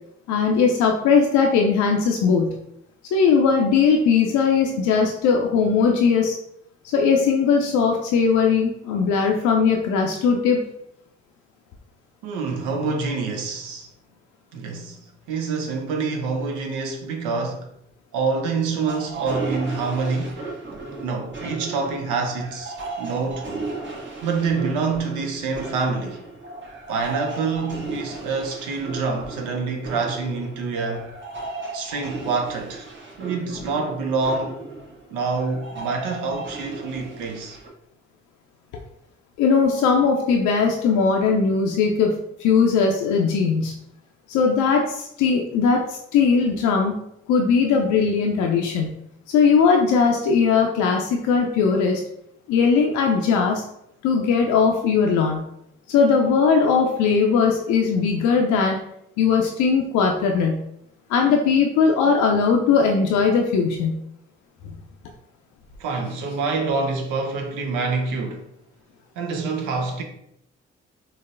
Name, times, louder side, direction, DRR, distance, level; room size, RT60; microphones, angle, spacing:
voice 1, 0.3-2.6 3.1-6.3 6.9-10.7 39.4-42.1 42.4-43.8 44.3-47.0 47.3-49.0 49.3-52.0 52.5-53.6 54.0-55.5 55.9-58.8 59.2-60.6 61.1-64.0, left 5 dB, 80° left, 0.4 m, -19 dB
voice 2, 12.2-13.9 14.5-17.7 18.1-20.4 21.0-23.5 24.2-26.3 26.9-31.1 31.7-32.9 33.2-34.6 35.1-37.6 65.8-68.5 69.2-70.0, right 4 dB, 85° right, 0.5 m, -26 dB
sound 1, 18.9-37.7, right 3 dB, 40° right, 1.0 m, -35 dB
3.8 x 2.1 x 2.5 m
hypercardioid pair, 40°, 30 cm